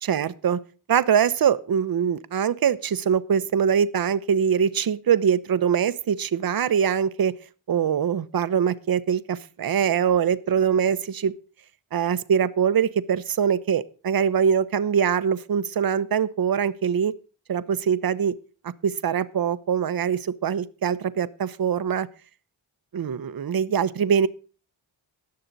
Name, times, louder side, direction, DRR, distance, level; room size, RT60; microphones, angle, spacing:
voice 1, 0.0-0.6 0.9-7.3 7.7-11.3 11.9-17.1 17.5-18.3 18.6-22.1 22.9-24.3, right 7 dB, 45° right, 15 dB, 0.8 m, -23 dB
19.0 x 6.7 x 4.0 m, 0.38 s
cardioid pair, 55°, 49 cm